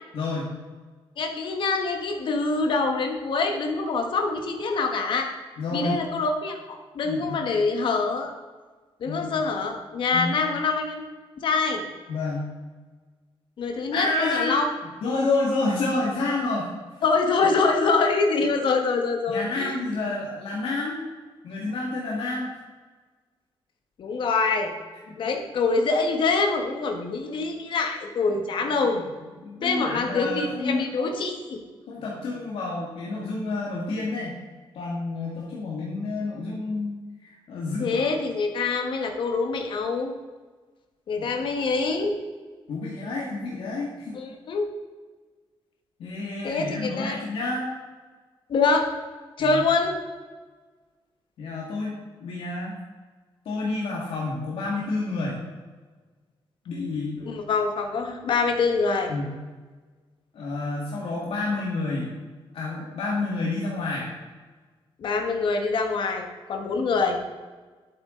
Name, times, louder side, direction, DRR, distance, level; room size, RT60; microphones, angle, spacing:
voice 1, 0.1-0.5 5.6-6.0 7.0-7.4 9.1-9.4 10.1-10.3 12.1-12.5 13.9-14.6 15.0-16.7 19.3-21.0 21.4-22.5 25.1-25.2 29.2-31.2 31.9-34.4 34.7-38.2 41.2-41.3 42.7-44.1 46.0-47.7 49.4-49.6 51.4-52.8 53.5-55.4 56.7-57.2 59.1-59.3 60.3-62.1 62.5-64.1, left 2 dB, 75° left, -4 dB, 2.0 m, -29 dB
voice 2, 1.2-5.3 5.7-8.3 9.0-11.0 11.4-11.8 13.6-14.7 17.0-19.7 24.0-24.7 25.2-29.0 29.6-31.6 37.8-40.1 41.1-42.1 44.1-44.6 46.4-47.2 48.5-48.9 49.4-50.0 57.2-59.1 65.0-67.2, left 4 dB, 60° left, 4 dB, 1.5 m, -25 dB
11.0 x 8.5 x 3.9 m, 1.4 s
wide cardioid pair, 180°, 10 cm